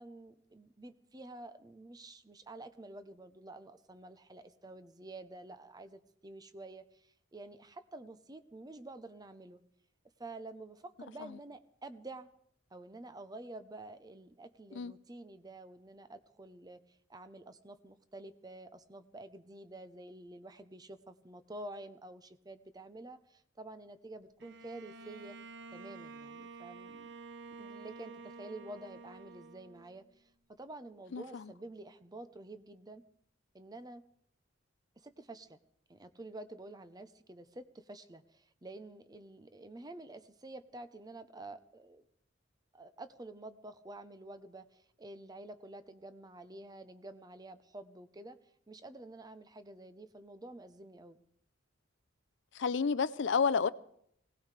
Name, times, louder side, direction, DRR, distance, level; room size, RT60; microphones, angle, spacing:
voice 1, 0.0-9.6 10.2-12.3 12.7-25.4 25.7-27.1 27.6-33.0 33.5-34.1 35.0-35.6 35.9-42.0 42.7-48.4 48.7-51.2, right 2 dB, 20° right, 0.7 m, -49 dB
Bowed string instrument, 24.4-30.2, right 4 dB, 60° right, 0.8 m, -50 dB
voice 2, 52.6-53.7, left 5 dB, 65° left, 0.5 m, -29 dB
19.5 x 17.5 x 3.3 m
head